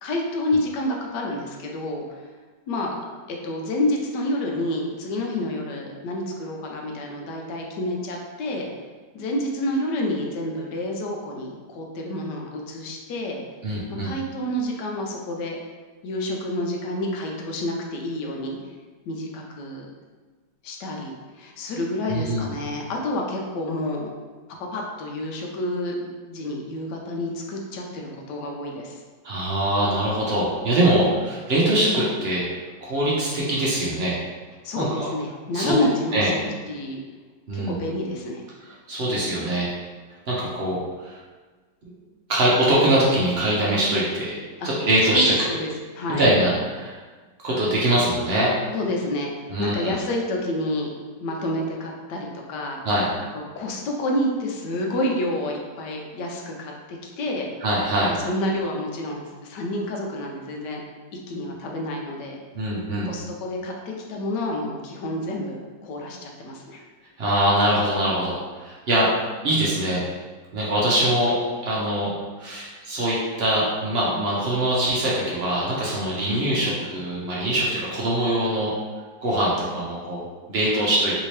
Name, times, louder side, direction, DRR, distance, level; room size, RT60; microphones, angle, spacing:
voice 1, 0.0-2.3 2.7-3.0 3.3-8.7 9.1-13.4 14.0-15.6 16.0-18.6 19.1-19.9 20.6-24.1 24.7-29.0 34.6-37.0 37.5-38.4 44.6-44.7 45.1-46.3 48.7-49.3 49.6-50.9 51.2-52.8 53.6-57.5 58.1-60.8 61.3-62.4 63.0-66.8 76.3-76.7, left 1 dB, 80° left, 0 dB, 1.2 m, -29 dB
voice 2, 13.6-14.1 22.1-22.5 29.2-32.4 32.8-34.2 34.8-35.1 35.5-35.7 36.1-36.3 37.5-37.8 38.9-39.7 40.3-40.8 41.0-41.2 42.3-44.4 44.6-45.6 46.2-47.0 47.4-48.5 49.5-49.9 52.9-53.1 57.6-58.1 62.5-63.1 67.2-69.1 69.4-70.0 70.5-71.3 71.6-72.1 72.4-78.7 79.2-81.2, right 1 dB, 65° right, -6 dB, 0.6 m, -23 dB
3.3 x 2.8 x 3.1 m, 1.4 s
omnidirectional pair, 1.9 m